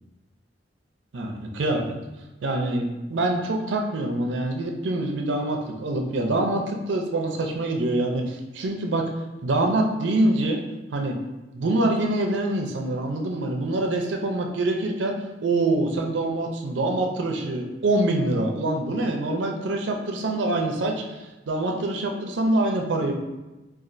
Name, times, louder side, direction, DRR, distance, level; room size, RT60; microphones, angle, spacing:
voice 1, 1.1-1.8 2.4-9.0 9.4-10.6 10.9-11.1 11.5-15.1 15.4-23.1, right 2 dB, 75° right, 2 dB, 0.5 m, -25 dB
4.2 x 2.4 x 2.5 m, 1.1 s
head